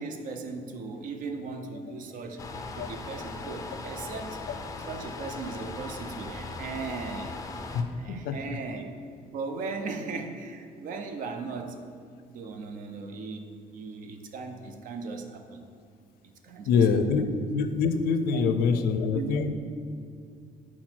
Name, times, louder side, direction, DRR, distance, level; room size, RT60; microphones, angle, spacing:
voice 1, 0.0-2.4 2.8-4.4 4.9-7.3 8.0-8.9 9.3-11.8 12.3-13.5 13.7-15.6 16.2-16.8 18.3-18.4 18.7-18.9 19.1-19.3, right 4 dB, 60° right, 6 dB, 0.6 m, -37 dB
sound 1, 2.4-7.8, left 3 dB, 20° left, 0.4 m, -39 dB
voice 2, 8.1-8.6 16.6-19.5, left 5 dB, 85° left, 9 dB, 0.5 m, -25 dB
5.9 x 4.3 x 4.5 m, 2.3 s
cardioid pair, 150°, 15 cm